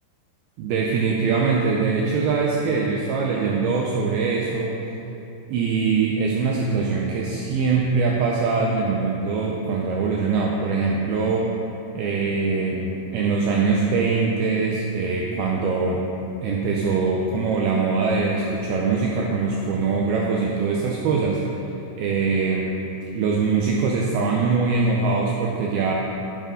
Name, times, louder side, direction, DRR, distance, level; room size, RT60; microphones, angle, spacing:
voice 1, 0.6-4.7 5.5-11.5 11.9-16.0 16.4-21.4 22.0-22.7 23.1-25.9, right 4 dB, 80° right, -2 dB, 2.2 m, -22 dB
10.5 x 9.1 x 3.7 m, 2.9 s
omnidirectional pair, 5.1 m